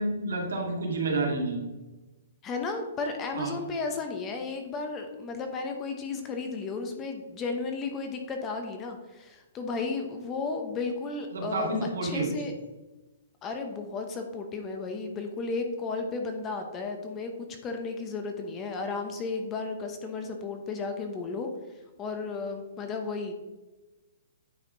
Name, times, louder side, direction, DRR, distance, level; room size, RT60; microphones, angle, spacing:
voice 1, 0.0-1.6 3.3-3.5 11.3-12.4, right 2 dB, 90° right, 0 dB, 2.3 m, -29 dB
voice 2, 2.4-11.7 12.0-12.5 13.4-21.5 22.0-23.3, left 4 dB, 20° left, 4 dB, 0.7 m, -34 dB
9.1 x 4.2 x 3.8 m, 1.1 s
hypercardioid pair, 160°, 0 cm